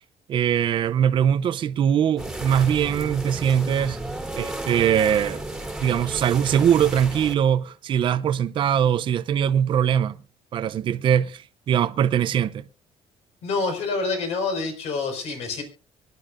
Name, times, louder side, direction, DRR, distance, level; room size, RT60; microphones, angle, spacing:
voice 1, 0.3-4.0 4.3-5.4 5.8-10.2 10.5-12.6, right 9 dB, 45° right, 0.6 m, -22 dB
sound 1, 2.2-7.3, right 2 dB, 5° right, 2.3 m, -33 dB
voice 2, 13.4-15.6, left 4 dB, 65° left, 5.2 m, -27 dB
24.5 x 11.0 x 2.6 m
cardioid pair, 140°, 12 cm